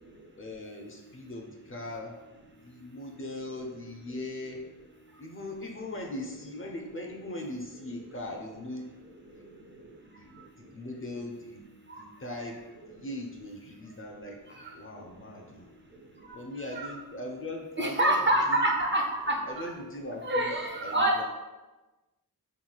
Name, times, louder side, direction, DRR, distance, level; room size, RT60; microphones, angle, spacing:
voice 1, 0.4-2.2 2.6-4.6 5.2-8.8 9.3-9.5 10.2-10.3 10.6-11.6 12.0-12.6 12.9-15.7 16.3-18.2 18.5-18.7 19.4-20.5 20.8-21.2, left 1 dB, 35° left, 1 dB, 0.4 m, -40 dB
voice 2, 17.8-19.7 20.2-21.2, right 1 dB, 30° right, 0 dB, 0.4 m, -27 dB
3.0 x 2.7 x 2.3 m, 1.1 s
cardioid pair, 45°, 39 cm